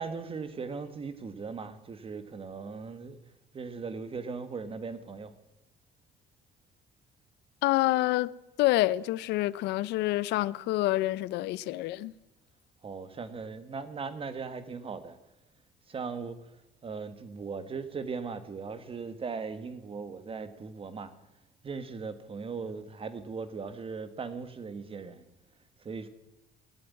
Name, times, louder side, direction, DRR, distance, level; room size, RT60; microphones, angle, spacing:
voice 1, 0.0-3.2 3.5-5.3 12.8-15.2 15.9-16.4 16.8-21.1 21.6-25.2 25.8-26.1, right 5 dB, 35° right, 1.5 m, -38 dB
voice 2, 7.6-8.3 8.6-12.1, left 17 dB, 85° left, 0.5 m, -27 dB
18.0 x 7.7 x 9.6 m
cardioid pair, 110°, 17 cm